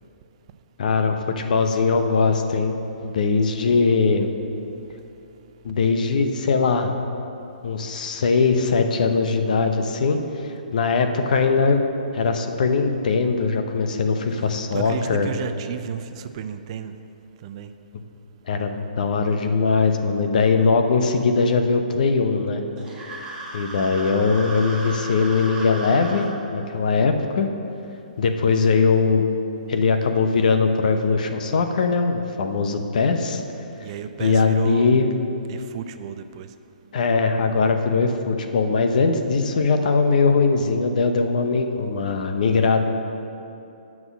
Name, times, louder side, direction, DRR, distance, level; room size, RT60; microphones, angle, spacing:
voice 1, 0.8-2.8 3.0-4.3 5.6-6.9 7.6-10.2 10.4-11.8 12.1-15.3 18.5-22.6 23.5-27.5 28.2-29.2 29.7-33.4 34.2-35.1 36.9-42.8, left 4 dB, 60° left, 6 dB, 0.8 m, -20 dB
voice 2, 14.7-16.9 17.4-17.7 33.8-34.9 35.5-36.5, right 9 dB, 40° right, 10 dB, 0.5 m, -32 dB
sound 1, 22.8-26.3, right 2 dB, 15° right, 1.9 m, -35 dB
7.3 x 6.1 x 7.4 m, 2.8 s
hypercardioid pair, 135°, 5 cm